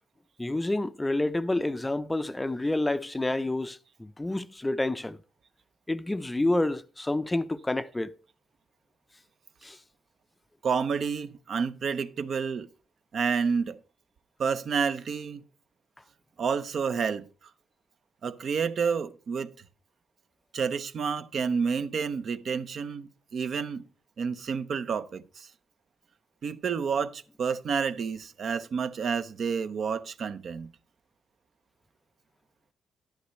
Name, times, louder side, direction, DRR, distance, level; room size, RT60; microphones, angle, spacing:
voice 1, 0.4-5.2 5.9-8.2 9.6-9.8, left 2 dB, 15° left, 0.5 m, -29 dB
voice 2, 10.6-12.7 13.1-13.8 14.4-15.4 16.4-17.3 18.2-19.5 20.5-23.8 24.2-25.5 26.4-30.7, right 6 dB, 55° right, 0.7 m, -29 dB
12.5 x 11.5 x 3.1 m
cardioid pair, 90°, 0 cm